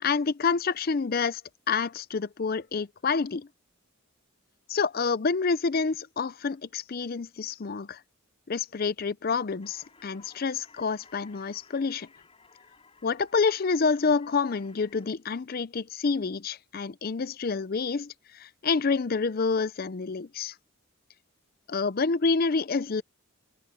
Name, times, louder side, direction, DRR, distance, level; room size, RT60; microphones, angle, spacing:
voice 1, 0.0-1.4 1.7-3.5 4.7-8.0 8.5-12.1 13.0-20.5 21.7-23.0, left 4 dB, 45° left, 0.5 m, -28 dB
sound 1, 9.6-15.1, left 4 dB, 25° left, 5.3 m, -58 dB
head